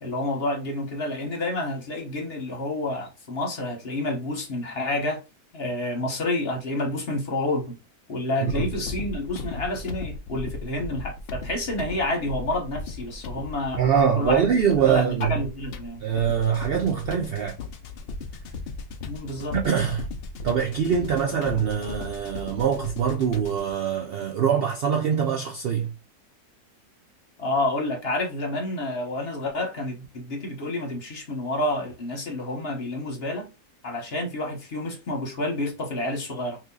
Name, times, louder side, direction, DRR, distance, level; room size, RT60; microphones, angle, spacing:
voice 1, 0.0-5.2 5.5-7.8 8.1-13.8 14.2-14.5 14.9-15.0 15.3-16.0 19.0-19.5 27.4-33.5 33.8-36.6, left 1 dB, 45° left, 1.1 m, -29 dB
sound 1, 8.5-23.7, left 4 dB, 85° left, 0.5 m, -37 dB
voice 2, 13.8-15.4 16.0-17.6 19.5-20.1 20.4-25.9, right 7 dB, 85° right, 0.5 m, -23 dB
2.8 x 2.6 x 3.6 m
omnidirectional pair, 1.6 m